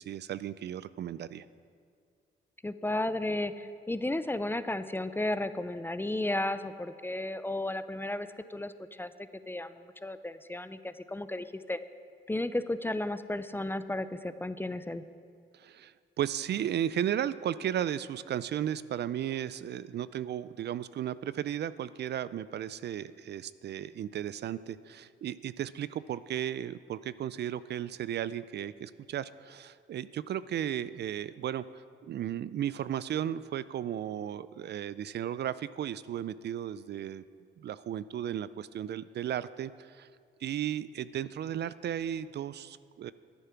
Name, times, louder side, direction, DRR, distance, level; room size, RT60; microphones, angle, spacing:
voice 1, 0.0-1.5 15.5-37.2 37.6-40.1 40.4-43.1, right 10 dB, 60° right, 16 dB, 0.4 m, -35 dB
voice 2, 2.6-9.1 9.5-9.7 10.0-11.8 12.3-15.0, left 1 dB, 10° left, 12 dB, 0.4 m, -33 dB
11.5 x 9.6 x 5.9 m, 2.2 s
cardioid pair, 90°, 20 cm